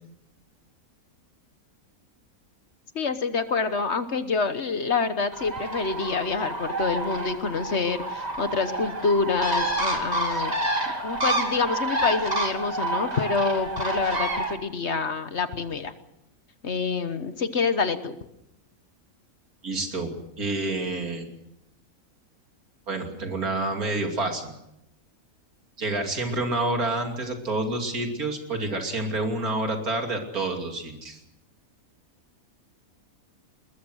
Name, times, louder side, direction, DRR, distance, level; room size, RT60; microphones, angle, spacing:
voice 1, 2.9-10.7 11.0-15.9 16.6-18.2, left 4 dB, 50° left, 10 dB, 1.4 m, -27 dB
Bird, 5.3-14.5, right 2 dB, 25° right, 2.8 m, -28 dB
voice 2, 19.6-21.2 22.9-24.5 25.8-31.2, right 2 dB, 80° right, 3 dB, 3.3 m, -28 dB
21.5 x 20.5 x 6.4 m, 0.83 s
omnidirectional pair, 1.5 m